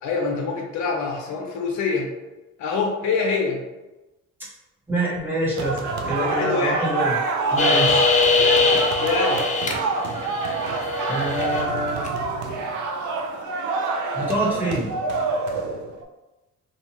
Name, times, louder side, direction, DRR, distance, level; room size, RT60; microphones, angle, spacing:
voice 1, 0.0-2.1 2.6-3.6 6.2-6.8 9.0-9.4, left 4 dB, 75° left, 1 dB, 0.6 m, -25 dB
voice 2, 4.9-7.2 7.5-8.1 11.1-12.1 14.1-14.9, right 1 dB, 5° right, -6 dB, 1.2 m, -25 dB
sound 1, 5.6-16.0, right 3 dB, 70° right, 0.5 m, -27 dB
sound 2, 7.6-9.7 10.1-11.6 12.0-12.1, left 4 dB, 25° left, 0.4 m, -21 dB
2.6 x 2.4 x 2.9 m, 1.1 s
cardioid pair, 90°, 30 cm